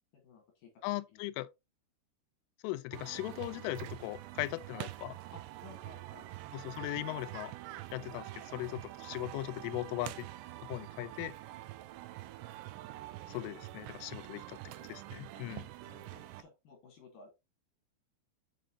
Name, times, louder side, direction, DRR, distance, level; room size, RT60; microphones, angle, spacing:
voice 1, 0.1-0.8 1.1-1.2 5.3-6.3 13.3-13.4 15.3-15.5 15.9-17.3, left 4 dB, 65° left, 2.2 m, -57 dB
voice 2, 0.8-1.5 2.6-5.2 6.5-7.5 7.9-10.3 10.7-11.3 13.3-15.7, left 18 dB, 85° left, 3.0 m, -39 dB
sound 1, 2.9-16.4, right 16 dB, 85° right, 2.6 m, -46 dB
7.7 x 5.0 x 2.7 m
omnidirectional pair, 5.6 m